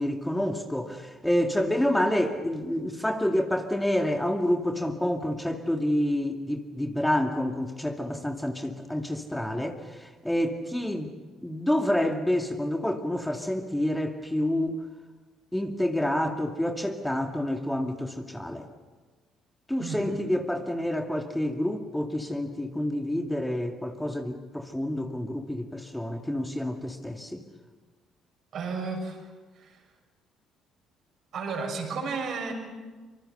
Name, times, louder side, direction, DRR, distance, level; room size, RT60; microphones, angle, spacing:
voice 1, 0.0-11.1 11.4-14.8 15.5-18.7 19.7-27.4, left 1 dB, 5° left, 4 dB, 2.4 m, -28 dB
voice 2, 19.8-20.3 28.5-29.2 29.5-29.8 31.3-32.5, right 4 dB, 55° right, 3 dB, 6.7 m, -33 dB
26.0 x 25.0 x 6.9 m, 1.3 s
hypercardioid pair, 50°, 0 cm